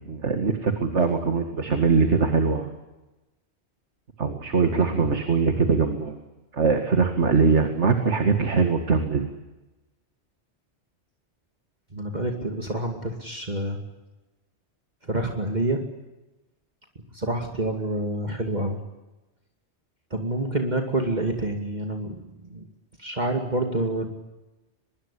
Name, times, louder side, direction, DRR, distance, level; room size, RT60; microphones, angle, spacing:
voice 1, 0.0-2.7 4.2-6.2 6.5-9.3, right 4 dB, 85° right, 6 dB, 2.4 m, -22 dB
voice 2, 11.9-13.8 15.1-15.8 17.1-18.8 20.1-22.2 22.5-22.7 23.0-24.1, right 2 dB, 40° right, 3 dB, 2.5 m, -27 dB
24.5 x 22.0 x 8.4 m, 1.0 s
omnidirectional pair, 1.2 m